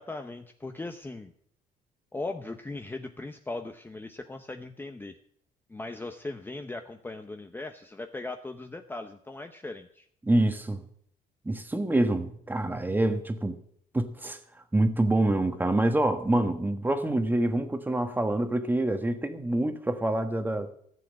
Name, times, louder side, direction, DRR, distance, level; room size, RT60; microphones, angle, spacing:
voice 1, 0.0-1.3 2.1-5.2 5.7-10.1, left 2 dB, 10° left, 0.8 m, -38 dB
voice 2, 10.2-10.8 11.4-13.6 13.9-14.4 14.7-20.7, right 1 dB, 10° right, 1.4 m, -26 dB
14.0 x 7.7 x 7.4 m
cardioid pair, 110°, 17 cm